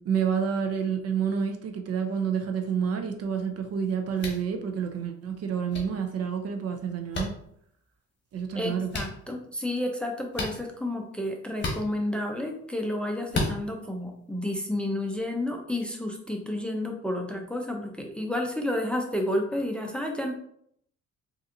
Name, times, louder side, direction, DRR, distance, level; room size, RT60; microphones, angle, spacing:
voice 1, 0.0-7.3 8.3-8.9, right 7 dB, 55° right, 5 dB, 0.6 m, -29 dB
sound 1, 4.2-4.4 5.7-5.8 7.1-7.3 8.9-9.1 10.3-10.6 11.6-11.8 13.3-13.5, left 2 dB, 40° left, 1.1 m, -30 dB
voice 2, 8.5-20.3, left 1 dB, 5° left, 2 dB, 0.5 m, -31 dB
3.9 x 2.6 x 2.6 m, 0.68 s
cardioid pair, 90°, 30 cm